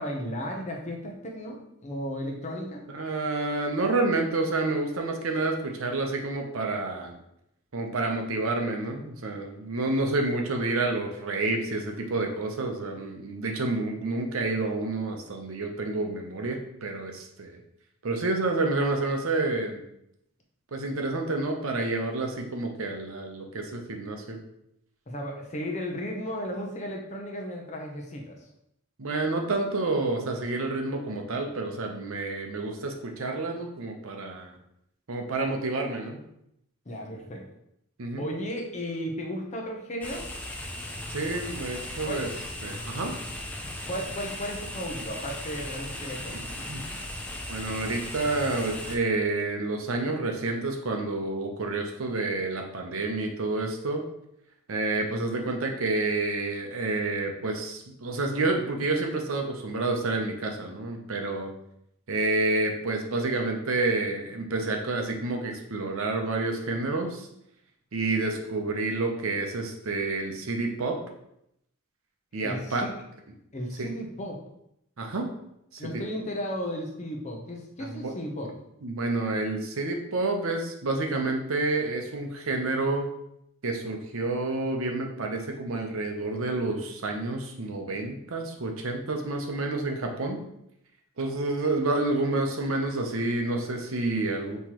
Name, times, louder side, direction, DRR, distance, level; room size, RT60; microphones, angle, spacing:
voice 1, 0.0-2.8 25.1-28.4 36.9-37.4 38.2-40.3 42.1-42.2 43.9-46.4 72.4-72.8 73.5-74.4 75.8-78.5, equal, 30° left, 0 dB, 0.7 m, -34 dB
voice 2, 2.9-7.1 7.7-17.6 18.0-19.8 20.7-24.4 29.0-34.6 35.1-36.2 38.0-38.3 41.1-42.3 42.6-43.1 46.5-46.8 47.5-54.0 54.7-61.5 62.1-67.3 67.9-71.0 72.3-72.8 73.8-73.9 75.0-75.3 75.7-75.8 77.8-78.1 78.8-83.1 83.6-90.4 91.2-94.6, right 2 dB, 70° right, 3 dB, 0.7 m, -29 dB
sound 1, 40.0-49.0, left 1 dB, 5° left, 0.4 m, -37 dB
5.7 x 3.1 x 2.9 m, 0.77 s
head